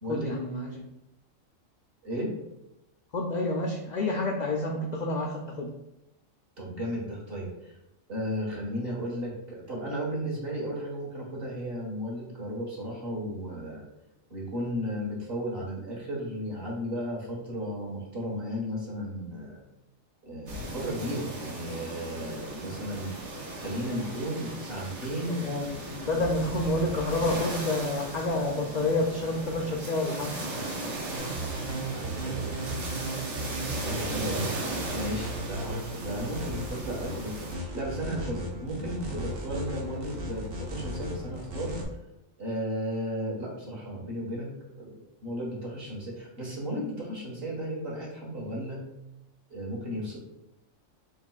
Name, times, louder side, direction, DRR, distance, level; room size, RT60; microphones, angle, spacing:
voice 1, 0.1-0.8 3.1-5.7 25.3-30.4, left 2 dB, 70° left, 1 dB, 0.4 m, -29 dB
voice 2, 2.0-2.3 6.6-7.7 8.1-13.8 14.3-19.6 20.2-23.1 23.6-25.4 31.7-32.8 33.8-34.5 34.9-41.8 42.4-44.9 45.2-48.8 49.5-50.2, equal, 45° right, -4 dB, 1.6 m, -34 dB
sound 1, 20.5-37.5, right 2 dB, 65° right, 1.2 m, -37 dB
sound 2, 31.2-41.8, right 1 dB, 85° right, 1.3 m, -36 dB
4.4 x 4.0 x 2.3 m, 0.92 s
omnidirectional pair, 1.4 m